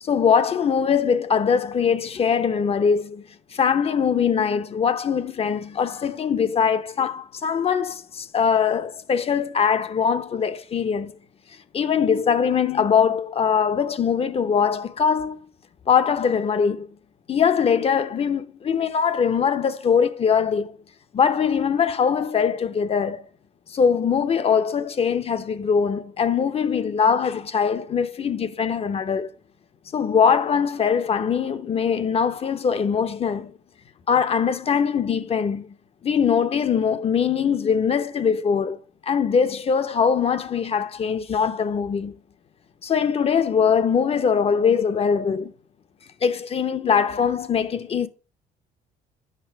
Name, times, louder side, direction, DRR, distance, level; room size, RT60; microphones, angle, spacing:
voice 1, 0.0-3.2 3.5-11.2 11.7-15.4 15.9-16.9 17.3-20.7 21.1-23.2 23.7-29.3 29.9-33.5 34.1-35.7 36.0-38.8 39.1-42.2 42.8-45.5 46.2-48.1, left 6 dB, 35° left, 0.8 m, -22 dB
9.0 x 5.6 x 4.5 m
cardioid pair, 110°, 17 cm